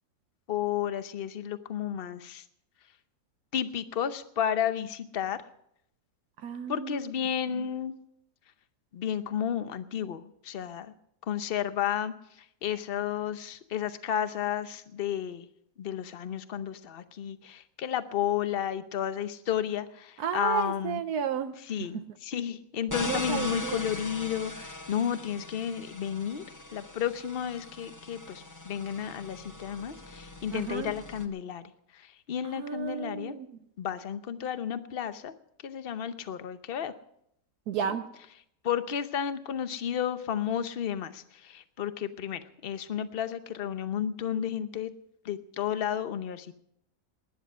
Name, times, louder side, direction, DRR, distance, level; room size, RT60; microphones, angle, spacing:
voice 1, 0.5-2.4 3.5-5.4 6.7-8.0 8.9-10.9 11.3-15.5 15.8-21.0 21.7-26.4 26.7-33.4 33.8-35.3 35.6-36.9 38.6-44.9 45.2-46.5, left 9 dB, 45° left, 11 dB, 0.9 m, -32 dB
voice 2, 6.4-7.1 7.5-7.6 20.2-21.5 23.1-23.8 30.5-30.9 32.4-33.5 37.7-38.1, right 8 dB, 75° right, 8 dB, 1.3 m, -32 dB
sound 1, 22.9-31.3, left 2 dB, 15° left, 0.8 m, -41 dB
19.5 x 10.0 x 5.5 m, 0.74 s
omnidirectional pair, 1.7 m